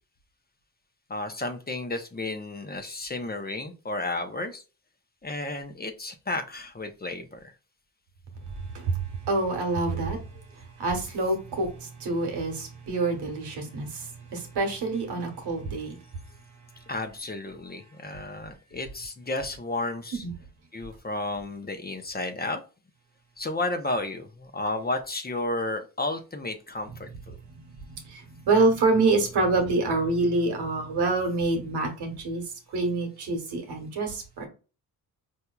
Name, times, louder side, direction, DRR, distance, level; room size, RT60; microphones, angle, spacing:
voice 1, 1.1-4.6 5.2-7.5 16.9-20.2 20.7-22.6 23.4-27.4, left 2 dB, 25° left, 0.7 m, -32 dB
voice 2, 8.7-10.4 10.8-16.0 20.2-20.3 27.5-32.4 32.7-34.5, right 3 dB, 85° right, 1.2 m, -27 dB
4.5 x 2.7 x 2.3 m
cardioid pair, 60°, 39 cm